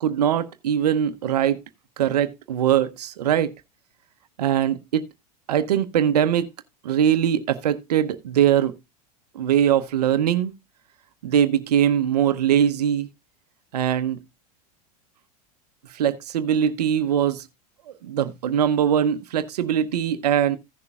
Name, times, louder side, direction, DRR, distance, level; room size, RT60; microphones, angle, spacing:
voice 1, 0.0-1.6 2.0-3.5 4.4-5.1 5.5-6.5 6.8-8.7 9.3-10.5 11.2-13.1 13.7-14.2 15.9-17.4 18.0-20.6, right 9 dB, 80° right, 0.8 m, -21 dB
16.0 x 6.7 x 2.4 m
hypercardioid pair, 95°, 20 cm